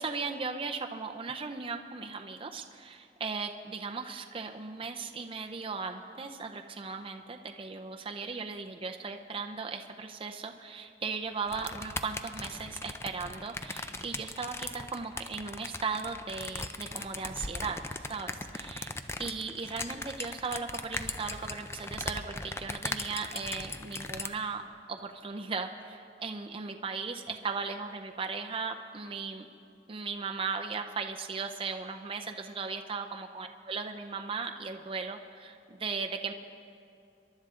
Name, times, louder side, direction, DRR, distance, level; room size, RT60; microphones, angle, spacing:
voice 1, 0.0-18.9 19.2-24.6 24.9-29.5 29.9-36.3, right 4 dB, 30° right, 4 dB, 0.6 m, -37 dB
sound 1, 11.5-24.3, left 2 dB, 15° left, 0.5 m, -39 dB
27.0 x 11.5 x 3.7 m, 2.4 s
head